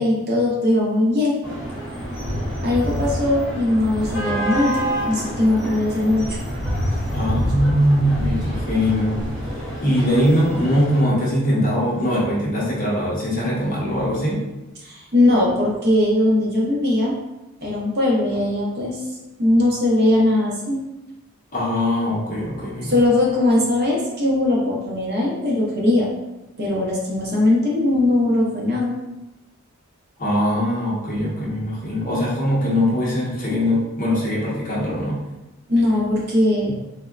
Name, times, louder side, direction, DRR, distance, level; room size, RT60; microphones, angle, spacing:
voice 1, 0.0-1.4 2.6-4.8 5.1-6.4 14.8-17.1 17.6-19.0 19.4-20.8 22.8-26.1 26.6-28.9 35.7-36.7, left 1 dB, 45° right, -4 dB, 0.6 m, -19 dB
sound 1, 1.4-11.0, equal, 20° right, 0.8 m, -27 dB
voice 2, 7.1-9.2 9.6-14.4 21.5-23.0 30.2-35.2, equal, 35° left, -6 dB, 0.7 m, -21 dB
3.5 x 2.1 x 2.3 m, 0.99 s
head